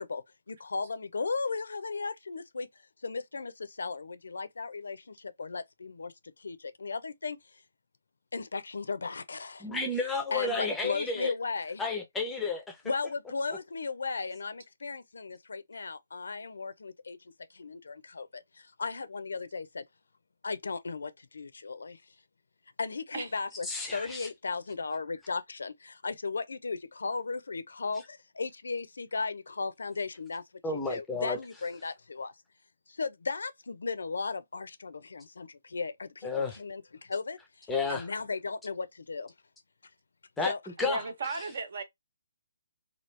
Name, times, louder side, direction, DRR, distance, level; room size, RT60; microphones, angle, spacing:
voice 1, 0.0-2.7 3.0-7.4 8.3-9.7 10.3-11.8 12.8-17.2 17.5-19.8 20.4-22.0 22.8-30.4 30.9-32.3 32.9-39.3 40.4-40.6, left 4 dB, 85° left, 0.6 m, -36 dB
voice 2, 9.6-11.3 11.8-12.8 23.7-24.3 30.6-31.4 36.2-36.6 37.7-38.1 40.4-40.5 40.8-41.0, left 3 dB, 5° left, 0.6 m, -31 dB
voice 3, 40.8-41.8, right 3 dB, 55° right, 0.9 m, -35 dB
3.0 x 2.4 x 3.2 m
hypercardioid pair, 165°, 0 cm